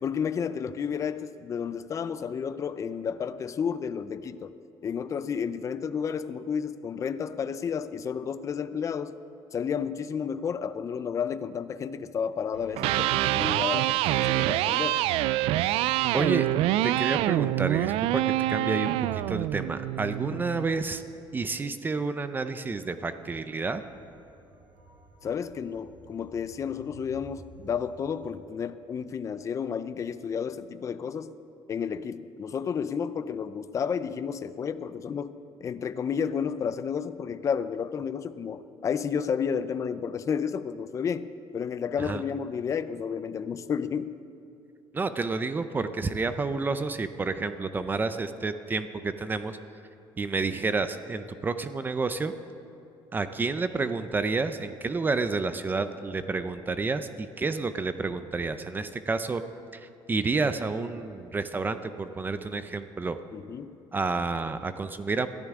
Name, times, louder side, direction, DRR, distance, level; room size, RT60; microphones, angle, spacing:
voice 1, 0.0-4.5 4.8-9.2 9.5-15.0 18.6-18.9 20.3-20.4 25.2-31.3 31.7-35.4 35.6-44.2 63.3-63.8, left 7 dB, 35° left, 13 dB, 0.5 m, -31 dB
Electric guitar, 12.6-20.7, right 15 dB, 90° right, 0.4 m, -26 dB
voice 2, 16.1-16.5 16.8-18.2 18.5-21.0 21.3-23.8 42.0-42.2 44.9-49.6 50.2-52.3 53.1-59.4 59.7-63.2 63.9-65.3, right 4 dB, 20° right, 10 dB, 0.6 m, -30 dB
sound 1, 23.2-28.3, right 1 dB, 65° right, 3.2 m, -53 dB
21.5 x 14.0 x 3.7 m, 2.8 s
cardioid pair, 140°, 10 cm